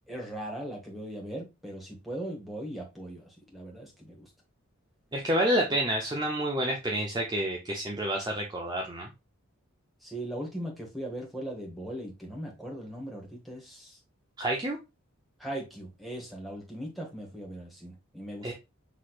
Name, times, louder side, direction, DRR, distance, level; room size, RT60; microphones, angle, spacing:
voice 1, 0.1-4.3 10.0-14.0 15.4-18.5, right 1 dB, ahead, 1.3 m, -39 dB
voice 2, 5.1-9.1 14.4-14.8 18.4-18.5, right 1 dB, 20° right, 0.6 m, -29 dB
6.0 x 3.2 x 2.4 m
head